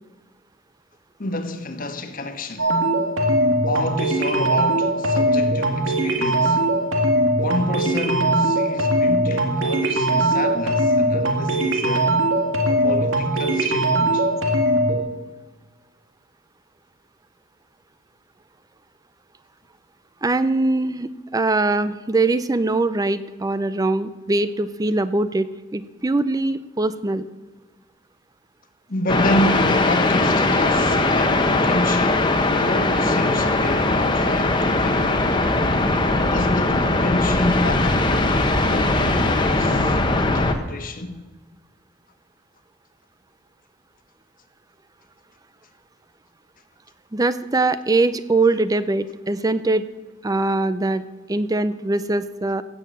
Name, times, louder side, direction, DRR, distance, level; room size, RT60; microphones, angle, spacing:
voice 1, 1.2-2.7 3.7-6.6 7.4-12.1 12.7-14.3 28.9-35.3 36.1-41.2, left 1 dB, 45° left, 1.3 m, -29 dB
sound 1, 2.6-15.0, right 1 dB, 85° right, 2.3 m, -20 dB
voice 2, 20.2-25.5 25.7-27.2 47.1-49.8 50.2-51.0 51.3-52.6, right 2 dB, 20° right, 0.5 m, -22 dB
sound 2, 29.1-40.5, left 2 dB, 25° left, 1.1 m, -20 dB
16.0 x 7.7 x 7.5 m
head